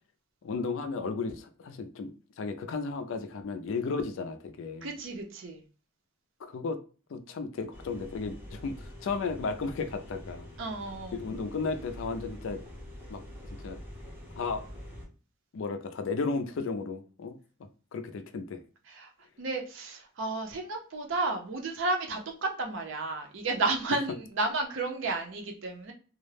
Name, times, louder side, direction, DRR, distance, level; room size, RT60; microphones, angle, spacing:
voice 1, 0.4-4.9 6.4-6.8 7.1-10.5 11.1-12.6 13.1-13.8 14.4-14.7 15.5-17.4 17.9-18.6, left 4 dB, 60° left, 9 dB, 0.4 m, -34 dB
voice 2, 4.8-5.6 10.6-11.2 18.9-19.1 19.4-25.9, right 3 dB, 60° right, 3 dB, 0.5 m, -32 dB
sound 1, 7.7-15.1, left 1 dB, 10° right, 0.6 m, -45 dB
2.3 x 2.0 x 3.2 m, 0.36 s
head